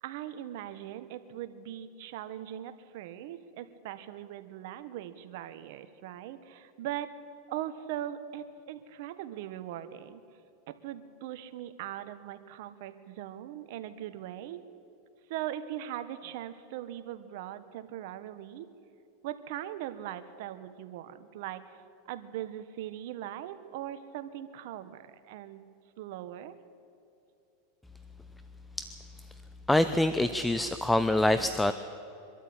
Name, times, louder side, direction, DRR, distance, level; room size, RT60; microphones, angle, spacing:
voice 1, 0.0-7.1 7.5-10.2 10.7-14.6 15.3-18.7 19.2-21.7 22.1-25.6 26.0-26.5, right 12 dB, 65° right, 11 dB, 1.4 m, -40 dB
voice 2, 29.7-31.7, left 1 dB, 5° left, 11 dB, 0.7 m, -25 dB
23.5 x 13.0 x 8.9 m, 2.7 s
supercardioid pair, 120°, 0 cm